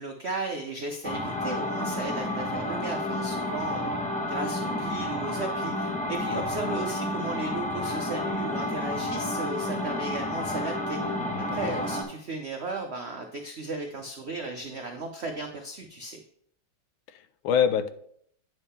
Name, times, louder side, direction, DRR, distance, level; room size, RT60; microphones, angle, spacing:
voice 1, 0.0-3.9 4.2-16.2, right 3 dB, 80° right, 4 dB, 0.5 m, -35 dB
sound 1, 1.0-12.0, left 1 dB, 5° left, 0.8 m, -30 dB
voice 2, 11.0-11.7 17.1-17.9, left 8 dB, 85° left, 12 dB, 1.4 m, -28 dB
9.2 x 3.6 x 5.6 m, 0.65 s
omnidirectional pair, 2.1 m